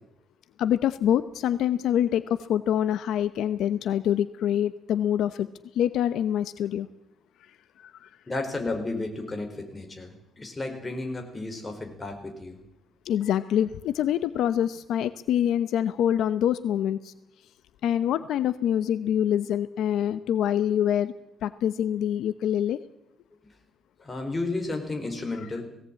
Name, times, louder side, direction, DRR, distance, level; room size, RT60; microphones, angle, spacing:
voice 1, 0.6-5.5 5.7-6.9 7.8-8.1 13.0-17.1 17.8-21.1 21.4-22.8, left 10 dB, 80° left, 13 dB, 0.9 m, -25 dB
voice 2, 8.3-12.6 24.0-25.6, left 2 dB, 20° left, 4 dB, 4.5 m, -32 dB
19.0 x 17.5 x 8.9 m, 0.86 s
cardioid pair, 140°, 0 cm